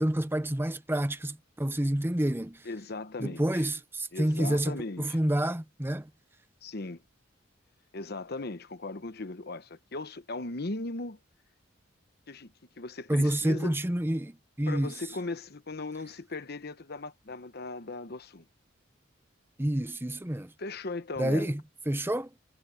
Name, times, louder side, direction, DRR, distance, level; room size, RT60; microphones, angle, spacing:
voice 1, 0.0-2.6 3.2-6.1 13.1-14.9 19.6-20.5 21.2-21.6 21.9-22.3, right 1 dB, 10° right, 0.9 m, -28 dB
voice 2, 2.6-3.7 4.1-5.2 6.6-7.0 7.9-11.2 12.3-13.7 14.7-18.4 20.6-21.5, left 2 dB, 55° left, 1.0 m, -38 dB
head